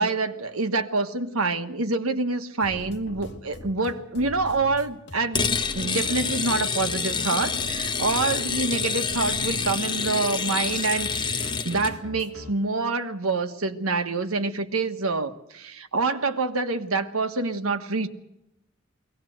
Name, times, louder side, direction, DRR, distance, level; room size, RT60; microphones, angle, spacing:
voice 1, 0.0-5.4 5.7-18.1, right 3 dB, 85° right, 8 dB, 1.6 m, -26 dB
sound 1, 2.6-12.5, left 2 dB, 55° left, 2.4 m, -42 dB
sound 2, 5.3-11.9, left 5 dB, 20° left, 0.9 m, -27 dB
22.5 x 18.5 x 8.0 m, 0.88 s
head